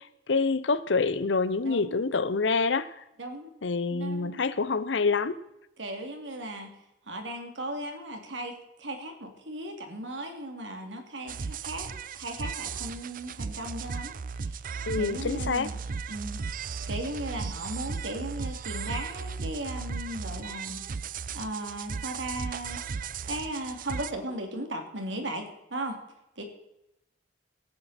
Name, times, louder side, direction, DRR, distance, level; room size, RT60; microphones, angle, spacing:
voice 1, 0.0-3.0 3.6-5.4 14.9-15.7, left 4 dB, 75° left, 0.8 m, -27 dB
voice 2, 1.6-2.0 3.2-3.5 3.9-4.4 5.8-6.7 7.1-11.9 12.1-14.6 15.0-15.8 16.1-20.8 21.3-22.9 23.2-26.0 26.4-26.5, right 1 dB, 80° right, 2.8 m, -37 dB
sound 1, 11.3-24.1, right 5 dB, 50° right, 0.5 m, -36 dB
17.5 x 10.0 x 4.3 m
head